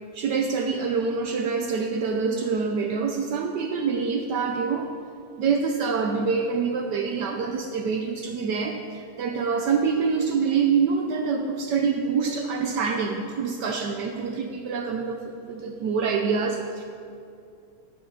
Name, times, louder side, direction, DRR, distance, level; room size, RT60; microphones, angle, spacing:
voice 1, 0.1-4.9 5.4-16.8, right 5 dB, 70° right, 4 dB, 1.0 m, -26 dB
11.0 x 5.9 x 6.5 m, 2.5 s
omnidirectional pair, 2.4 m